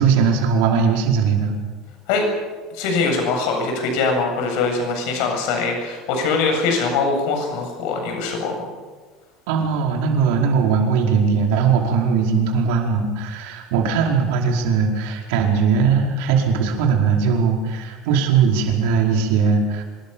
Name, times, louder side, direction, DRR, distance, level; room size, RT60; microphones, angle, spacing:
voice 1, 0.0-1.5 9.5-19.8, right 6 dB, 80° right, 1 dB, 4.9 m, -19 dB
voice 2, 2.7-8.7, left 4 dB, 70° left, 3 dB, 7.8 m, -22 dB
26.0 x 22.0 x 7.2 m, 1.4 s
cardioid pair, 165°, 0 cm